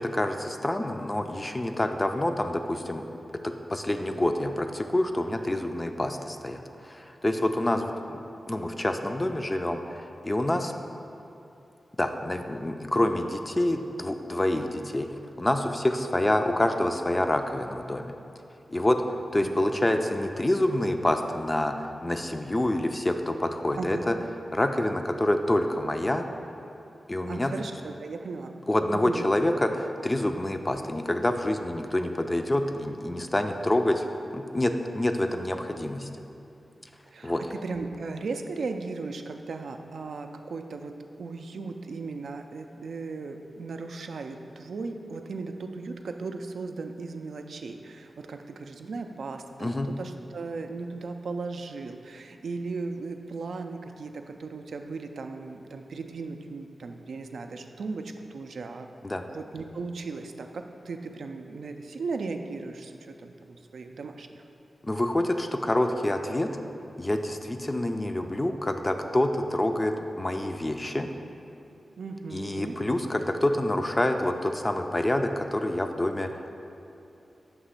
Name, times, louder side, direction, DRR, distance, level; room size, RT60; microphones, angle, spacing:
voice 1, 0.0-3.1 3.4-8.2 8.5-10.7 12.0-18.1 18.7-19.0 19.3-24.2 24.5-26.2 27.1-27.5 28.7-34.1 34.3-36.1 37.2-37.4 49.6-49.9 59.0-59.2 64.8-66.5 67.0-71.1 72.3-76.3, left 1 dB, 25° left, 6 dB, 0.3 m, -27 dB
voice 2, 19.4-19.9 23.8-24.0 27.3-28.6 28.9-29.3 37.1-58.9 59.3-64.4 72.0-72.8, right 4 dB, 80° right, 5 dB, 0.3 m, -37 dB
6.0 x 2.9 x 5.6 m, 2.8 s
wide cardioid pair, 80°, 0 cm